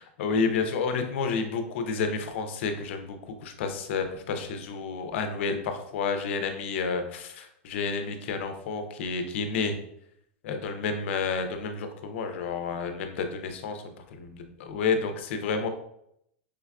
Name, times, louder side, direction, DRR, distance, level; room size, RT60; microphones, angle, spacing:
voice 1, 0.2-9.8 10.4-15.7, left 5 dB, 70° left, 7 dB, 0.6 m, -30 dB
4.9 x 2.3 x 2.3 m, 0.74 s
supercardioid pair, 130°, 7 cm